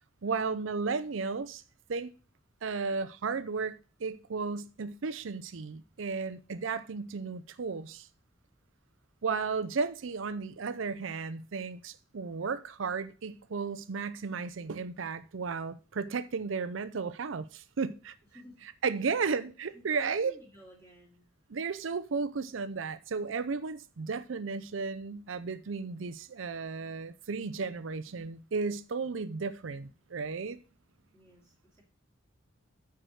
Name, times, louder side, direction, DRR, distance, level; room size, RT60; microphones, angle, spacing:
voice 1, 0.2-1.6 1.9-2.1 2.6-8.1 9.2-18.2 18.8-20.4 21.5-30.6, right 4 dB, 80° right, 0.6 m, -34 dB
voice 2, 19.7-21.3 31.1-31.8, equal, 15° left, 2.4 m, -56 dB
9.1 x 4.8 x 6.3 m
head